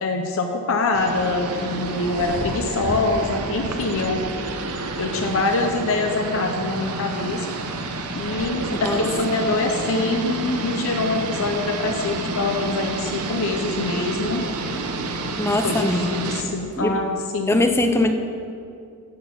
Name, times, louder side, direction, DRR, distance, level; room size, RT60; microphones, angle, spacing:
voice 1, 0.0-4.3 5.0-7.4 8.1-14.5 15.6-17.6, left 3 dB, 65° left, 4 dB, 0.6 m, -24 dB
sound 1, 0.9-16.4, right 2 dB, 90° right, 0.7 m, -29 dB
voice 2, 8.7-9.0 15.4-16.2 16.8-17.0 17.5-18.1, left 2 dB, 10° left, 6 dB, 0.4 m, -21 dB
10.5 x 4.2 x 7.1 m, 2.5 s
head